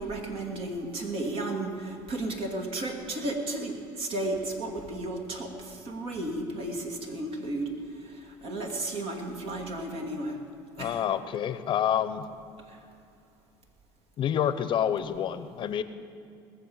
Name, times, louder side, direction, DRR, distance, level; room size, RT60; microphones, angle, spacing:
voice 1, 0.0-7.7 8.4-10.4 10.8-11.0, right 2 dB, 55° right, 2 dB, 2.5 m, -33 dB
voice 2, 10.8-12.3 14.2-15.8, left 9 dB, 50° left, 13 dB, 0.7 m, -28 dB
19.5 x 7.1 x 7.2 m, 2.4 s
supercardioid pair, 85°, 11 cm